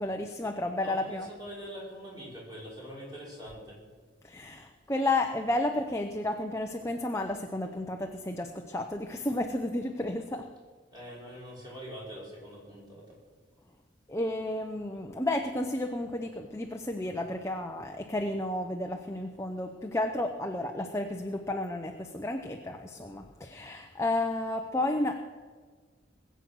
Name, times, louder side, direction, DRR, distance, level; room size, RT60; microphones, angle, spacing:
voice 1, 0.0-1.3 4.2-10.5 14.1-25.2, left 1 dB, 15° left, 3 dB, 0.8 m, -32 dB
voice 2, 0.8-3.8 10.9-13.2, equal, 25° right, -5 dB, 5.5 m, -44 dB
21.0 x 8.0 x 6.2 m, 1.5 s
head